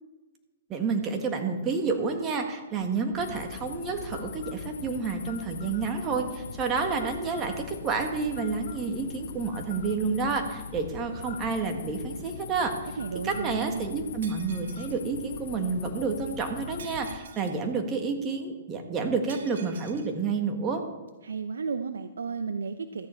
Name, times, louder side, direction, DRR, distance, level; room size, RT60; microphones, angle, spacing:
voice 1, 0.7-12.7 13.2-20.8, right 4 dB, 25° right, 4 dB, 1.7 m, -29 dB
sound 1, 3.1-17.2, left 7 dB, 70° left, 0.8 m, -41 dB
voice 2, 13.0-14.0 21.2-23.1, right 5 dB, 85° right, 9 dB, 0.6 m, -33 dB
Shatter, 14.2-15.0 16.8-17.6 19.3-20.1, right 6 dB, 70° right, 1.9 m, -48 dB
14.0 x 9.4 x 4.4 m, 1.2 s
hypercardioid pair, 140°, 0 cm